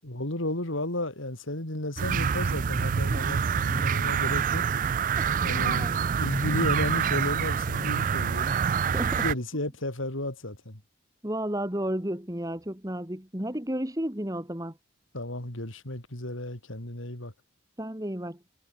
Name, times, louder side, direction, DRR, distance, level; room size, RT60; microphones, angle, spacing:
voice 1, 0.0-4.7 5.4-8.6 9.2-10.8 15.1-17.3, left 1 dB, 80° left, 4.4 m, -33 dB
sound 1, 2.0-9.3, right 7 dB, 40° right, 0.3 m, -26 dB
voice 2, 5.2-5.9 8.9-9.3 11.2-14.8 17.8-18.4, right 1 dB, 15° right, 2.0 m, -33 dB
head